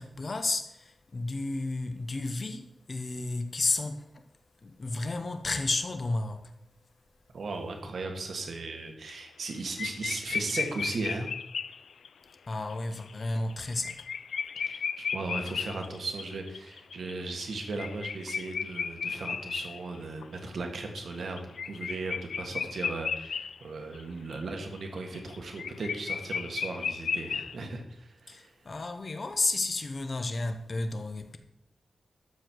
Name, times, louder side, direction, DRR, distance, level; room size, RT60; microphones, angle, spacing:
voice 1, 0.0-6.6 12.5-14.0 28.3-31.4, left 2 dB, 35° left, 1.0 m, -32 dB
voice 2, 7.3-11.3 14.6-28.5, right 3 dB, 65° right, 1.9 m, -37 dB
sound 1, 9.1-9.5 9.8-12.1 12.7-12.8 13.1-13.2 13.5-20.4 20.7-23.6 23.9-24.0 24.3-27.6, left 6 dB, 85° left, 0.4 m, -35 dB
12.5 x 7.2 x 4.7 m
wide cardioid pair, 150°, 0 cm